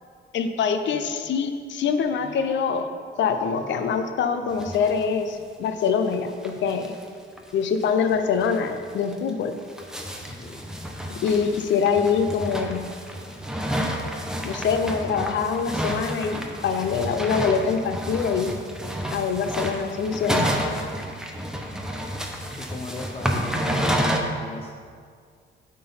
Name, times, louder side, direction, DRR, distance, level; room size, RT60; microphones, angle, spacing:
voice 1, 0.3-2.9 3.2-6.9 7.5-9.5 11.1-12.9 14.4-18.6 19.1-20.5, left 6 dB, 65° left, 8 dB, 0.6 m, -24 dB
sound 1, 4.6-5.1 5.4-5.5 5.7-5.8 6.1-6.2 6.4-7.0 7.4-7.5 7.8-7.9 8.4-8.6 9.1-24.2, equal, 5° right, 0.8 m, -30 dB
voice 2, 10.3-10.7 22.6-24.7, left 2 dB, 30° left, 0 dB, 0.6 m, -37 dB
8.6 x 3.8 x 5.5 m, 2.1 s
cardioid pair, 90°, 20 cm